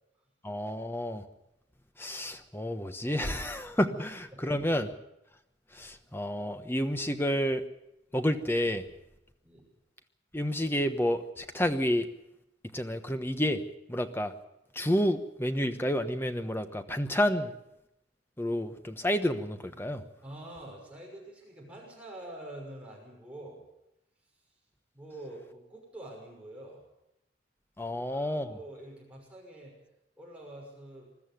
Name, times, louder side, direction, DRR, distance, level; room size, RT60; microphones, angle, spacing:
voice 1, 0.4-1.2 2.0-5.0 5.7-7.6 8.1-8.8 10.3-12.1 12.7-13.6 13.9-14.3 14.7-17.5 18.4-20.0 27.8-28.6, equal, 10° left, 8 dB, 1.1 m, -30 dB
voice 2, 20.2-23.6 24.9-26.8 27.8-29.7 30.2-31.1, right 1 dB, 5° right, -3 dB, 6.1 m, -46 dB
21.5 x 13.5 x 9.2 m, 0.86 s
head